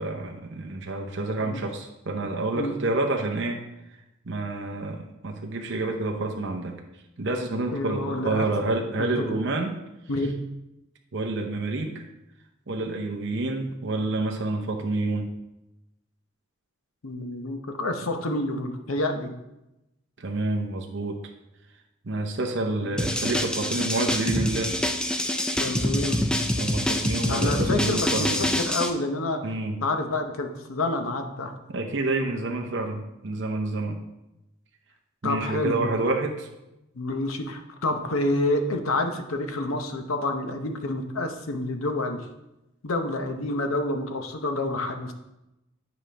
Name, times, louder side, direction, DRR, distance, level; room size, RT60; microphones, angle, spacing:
voice 1, 0.0-3.6 4.2-6.8 7.2-9.8 11.1-12.0 12.7-15.3 20.2-21.2 22.0-24.7 26.6-28.5 29.4-29.7 31.7-34.0 35.2-36.5, right 2 dB, 60° right, 2 dB, 0.7 m, -28 dB
voice 2, 7.7-8.5 9.0-9.4 10.1-10.3 17.0-19.3 25.6-26.2 27.3-29.4 29.8-31.5 35.2-36.2 36.9-42.2 42.8-45.1, left 2 dB, 90° left, 6 dB, 0.8 m, -28 dB
sound 1, 23.0-28.9, left 1 dB, 5° left, 0.3 m, -26 dB
9.5 x 5.0 x 3.4 m, 0.92 s
head